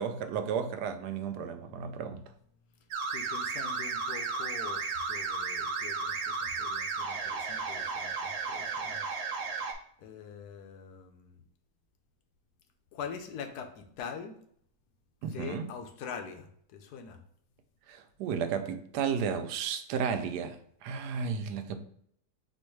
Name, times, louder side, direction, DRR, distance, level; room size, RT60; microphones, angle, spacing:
voice 1, 0.0-2.2 15.2-15.7 17.9-20.6 20.8-21.8, right 6 dB, 90° right, 1.1 m, -33 dB
sound 1, 2.9-9.7, right 4 dB, 60° right, 0.9 m, -34 dB
voice 2, 3.1-9.0 10.0-11.4 12.9-14.3 15.3-17.2, left 6 dB, 80° left, 1.2 m, -44 dB
4.5 x 2.5 x 4.4 m
omnidirectional pair, 1.7 m